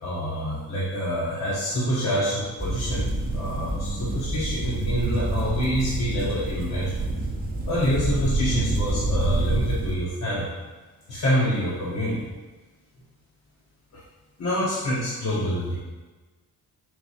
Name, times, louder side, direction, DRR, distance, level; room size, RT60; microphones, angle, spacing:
voice 1, 0.0-7.0 7.7-10.5 11.1-12.3 14.4-15.8, equal, 40° left, -7 dB, 0.9 m, -27 dB
sound 1, 2.6-10.0, right 2 dB, 25° right, 0.6 m, -27 dB
4.5 x 2.3 x 4.1 m, 1.3 s
cardioid pair, 90°, 38 cm